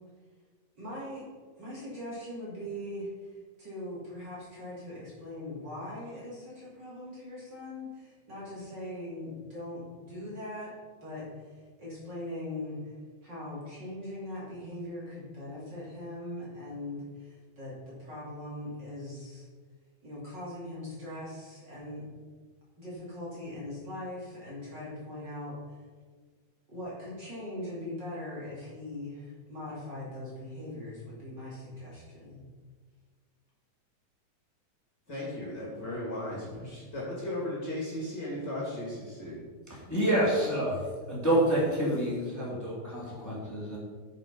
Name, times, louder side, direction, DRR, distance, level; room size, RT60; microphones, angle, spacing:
voice 1, 0.8-1.2 1.6-10.7 11.0-12.9 13.2-19.5 20.0-22.0 22.8-25.8 26.7-32.4, left 1 dB, 35° right, -7 dB, 3.2 m, -41 dB
voice 2, 35.1-39.4, left 1 dB, 35° left, -5 dB, 2.9 m, -36 dB
voice 3, 39.7-40.8 41.1-43.8, right 1 dB, 5° left, -6 dB, 2.7 m, -28 dB
8.9 x 7.1 x 5.4 m, 1.5 s
omnidirectional pair, 3.4 m